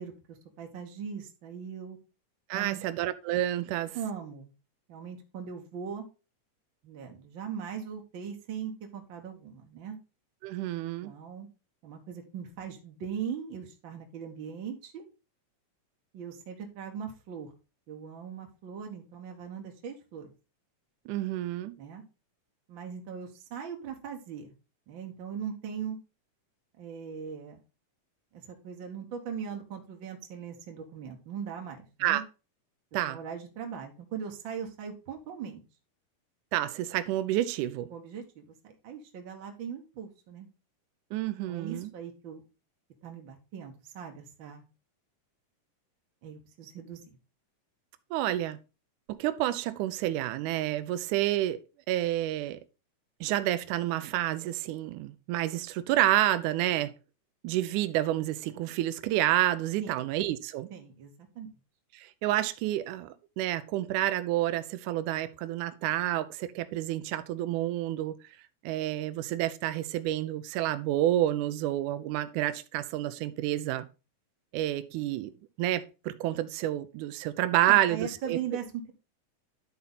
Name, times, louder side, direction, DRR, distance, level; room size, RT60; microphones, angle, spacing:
voice 1, 0.0-2.0 2.5-2.8 3.9-4.5 4.9-6.0 6.8-10.0 11.0-11.5 11.8-15.0 16.1-17.5 17.9-20.3 21.8-22.0 22.7-24.5 24.9-26.0 26.8-27.6 28.3-32.2 33.1-35.6 37.9-40.5 41.5-42.4 43.0-44.6 46.2-47.2 59.8-60.1 60.7-61.5 77.6-78.9, right 7 dB, 60° right, 1.3 m, -40 dB
voice 2, 2.5-4.0 10.4-11.1 21.1-21.8 32.0-32.2 32.9-33.2 36.5-37.9 41.1-41.9 48.1-48.6 49.2-51.6 51.9-52.6 53.2-56.9 57.4-60.7 61.9-68.2 68.6-73.9 74.5-78.4, right 14 dB, 80° right, 2.0 m, -29 dB
11.0 x 4.2 x 4.0 m
omnidirectional pair, 3.8 m